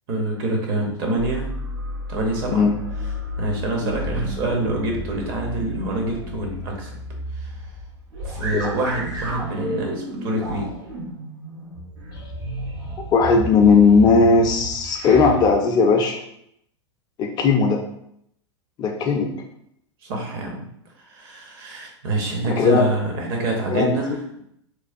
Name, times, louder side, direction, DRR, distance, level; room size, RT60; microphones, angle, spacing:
voice 1, 0.1-1.5 2.1-2.7 3.4-6.9 7.3-7.5 8.2-10.7 20.0-20.7 21.1-24.2, right 2 dB, 50° right, 0 dB, 0.8 m, -26 dB
sound 1, 1.1-15.5, equal, 80° right, 1.2 m, -32 dB
voice 2, 13.1-16.2 17.2-17.8 18.8-19.3 22.4-22.9 23.7-24.0, left 4 dB, 30° left, 3 dB, 0.3 m, -17 dB
3.1 x 2.1 x 2.6 m, 0.74 s
figure-of-eight pair, 95°, 15 cm